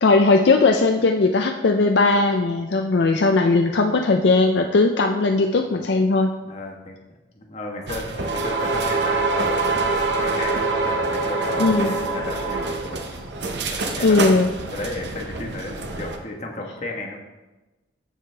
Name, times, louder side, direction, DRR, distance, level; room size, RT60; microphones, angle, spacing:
voice 1, 0.0-6.3 11.6-11.9 14.0-14.5, left 3 dB, 65° left, 4 dB, 0.5 m, -18 dB
voice 2, 6.4-7.0 7.3-13.3 13.7-14.2 14.7-17.2, left 2 dB, 35° left, 1 dB, 1.2 m, -34 dB
sound 1, 7.9-16.2, right 3 dB, 65° right, 0.8 m, -25 dB
13.5 x 5.0 x 3.4 m, 1.1 s
head